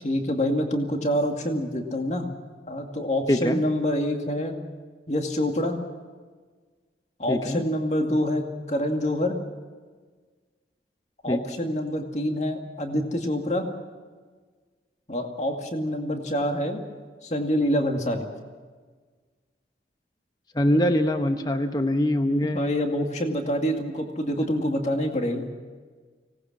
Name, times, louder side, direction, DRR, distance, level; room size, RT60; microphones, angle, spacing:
voice 1, 0.0-2.3 2.7-4.5 5.1-5.8 7.2-9.4 11.2-13.7 15.1-16.8 17.2-18.3 22.4-25.4, equal, 40° left, 3 dB, 2.3 m, -26 dB
voice 2, 3.3-3.6 7.3-7.6 11.3-11.4 20.5-22.6, left 1 dB, 20° left, 6 dB, 0.9 m, -23 dB
25.0 x 19.0 x 7.4 m, 1.5 s
head